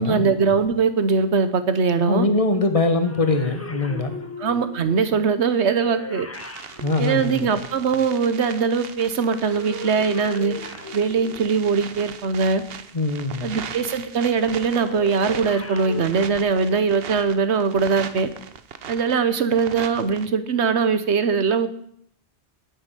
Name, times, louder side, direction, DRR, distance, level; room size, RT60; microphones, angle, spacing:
voice 1, 0.0-2.3 4.4-6.3 7.0-10.6 10.9-12.6 13.4-18.3 18.9-21.7, right 5 dB, 85° right, 11 dB, 1.3 m, -21 dB
voice 2, 2.1-4.2 6.8-7.5 12.9-13.5, left 2 dB, 35° left, 8 dB, 1.3 m, -22 dB
sound 1, 3.0-8.0 9.3-11.8 14.3-16.1, left 2 dB, 15° left, 0.8 m, -37 dB
sound 2, 6.3-20.3, right 7 dB, 65° right, 1.0 m, -39 dB
9.6 x 6.9 x 9.0 m, 0.68 s
omnidirectional pair, 1.1 m